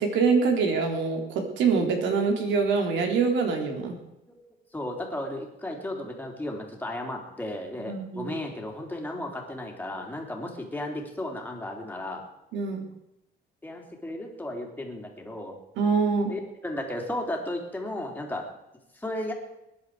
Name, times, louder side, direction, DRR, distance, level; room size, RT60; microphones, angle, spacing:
voice 1, 0.0-4.0 7.8-8.3 12.5-12.8 15.8-16.3, right 5 dB, 85° right, 3 dB, 3.4 m, -25 dB
voice 2, 4.7-12.2 13.6-15.6 16.3-18.4 18.9-19.3, left 1 dB, 10° left, 0 dB, 3.2 m, -34 dB
20.0 x 10.5 x 4.9 m, 0.88 s
cardioid pair, 135°, 19 cm